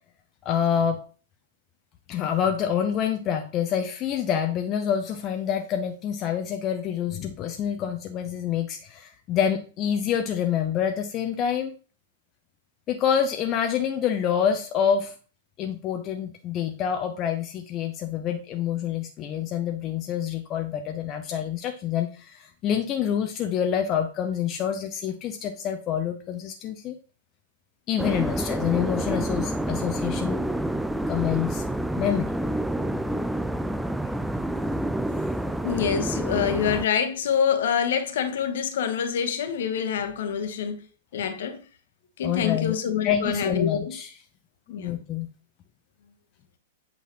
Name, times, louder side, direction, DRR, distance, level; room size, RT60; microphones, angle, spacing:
voice 1, 0.4-1.0 2.1-11.7 12.9-15.1 15.6-27.0 27.9-30.4 31.1-31.6 31.9-32.3 34.7-34.8 42.2-42.7 43.0-44.1 44.8-45.3, left 8 dB, 35° left, 0.7 m, -27 dB
sound 1, 28.0-36.9, right 1 dB, 5° right, 0.4 m, -28 dB
voice 2, 35.6-40.8 41.1-41.6 42.2-43.9 44.7-44.9, left 7 dB, 60° left, 1.2 m, -26 dB
8.3 x 5.6 x 3.0 m
figure-of-eight pair, 105°, 0 cm